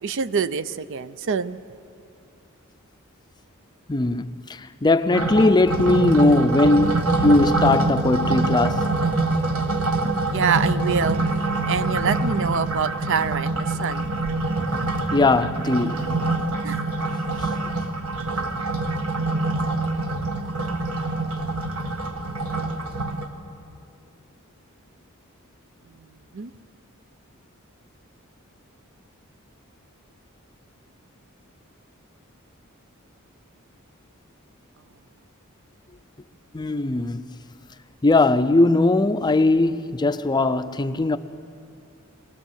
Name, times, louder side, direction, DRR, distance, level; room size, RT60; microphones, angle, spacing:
voice 1, 0.0-1.6 9.8-11.2 11.7-14.1 16.6-16.8 26.3-26.5, right 6 dB, 60° right, 0.5 m, -26 dB
voice 2, 3.9-8.9 15.1-16.2 36.5-37.4 38.0-41.2, left 2 dB, 20° left, 0.5 m, -19 dB
sound 1, 5.1-23.3, right 2 dB, 75° right, 1.6 m, -25 dB
21.0 x 19.0 x 7.4 m
head